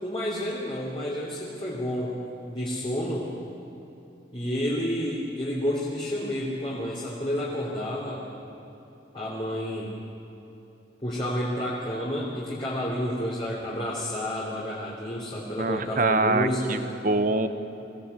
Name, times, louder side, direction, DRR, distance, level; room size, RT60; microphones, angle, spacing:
voice 1, 0.0-2.2 2.5-3.3 4.3-8.2 9.1-9.9 11.0-16.8, equal, 30° left, -5 dB, 3.1 m, -30 dB
voice 2, 15.6-17.5, right 3 dB, 50° right, 9 dB, 1.0 m, -24 dB
24.0 x 16.5 x 8.3 m, 2.9 s
head